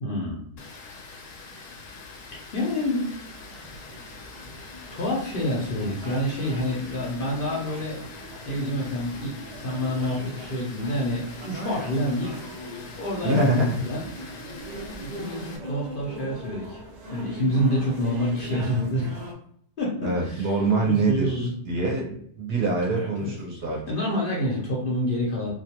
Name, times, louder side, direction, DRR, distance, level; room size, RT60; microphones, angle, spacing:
voice 1, 0.0-0.6 2.5-3.2 4.9-8.0 8.4-12.4 13.0-14.1 15.0-16.8 17.1-19.1 19.8-20.6 20.8-21.5 22.9-23.3 23.9-25.5, equal, 55° left, -4 dB, 0.7 m, -27 dB
Water, 0.6-15.6, left 3 dB, 75° left, 0.9 m, -44 dB
sound 1, 3.3-19.3, right 1 dB, 80° right, 0.3 m, -41 dB
voice 2, 13.2-13.8 20.0-23.8, right 2 dB, 60° right, -2 dB, 0.8 m, -24 dB
2.3 x 2.3 x 2.9 m, 0.66 s
omnidirectional pair, 1.4 m